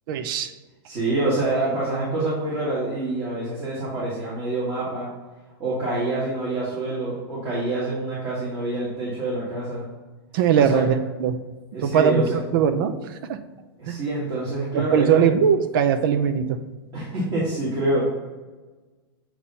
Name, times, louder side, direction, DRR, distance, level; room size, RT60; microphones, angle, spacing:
voice 1, 0.1-0.5 10.3-11.4 11.8-13.4 13.9-14.0 14.7-16.6, right 7 dB, 55° right, 10 dB, 0.6 m, -20 dB
voice 2, 0.8-5.1 5.6-9.9 10.5-10.8 11.7-12.4 13.8-15.3 16.9-18.1, right 2 dB, 30° right, -8 dB, 2.0 m, -26 dB
8.1 x 3.0 x 5.5 m, 1.3 s
supercardioid pair, 140°, 13 cm